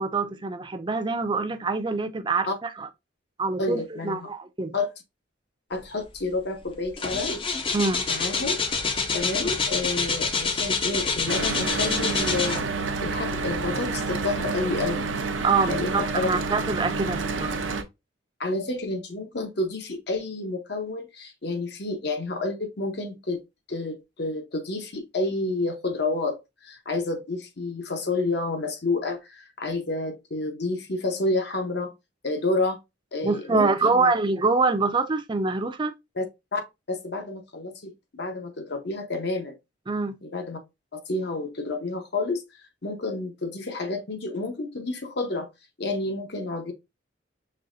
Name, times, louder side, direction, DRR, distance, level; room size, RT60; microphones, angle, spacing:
voice 1, 0.0-2.9 3.4-4.7 7.7-8.0 9.4-9.5 15.4-17.5 33.2-35.9 39.9-40.2, right 4 dB, 25° right, 0.5 m, -25 dB
voice 2, 3.6-4.3 4.7-4.9 5.7-7.5 8.1-8.6 9.1-12.6 13.0-15.3 15.7-16.4 18.4-23.4 23.7-26.4 26.6-31.9 32.2-32.8 33.1-34.1 36.1-36.2 36.5-36.6 36.9-39.6 40.2-40.6 40.9-45.5 45.8-46.7, left 2 dB, 60° left, 0.9 m, -29 dB
sound 1, 6.2-6.4 6.7-13.0 13.5-13.6, left 4 dB, 30° left, 0.6 m, -27 dB
Mechanical fan, 11.3-17.8, right 4 dB, 80° right, 0.7 m, -29 dB
5.5 x 3.1 x 2.5 m
head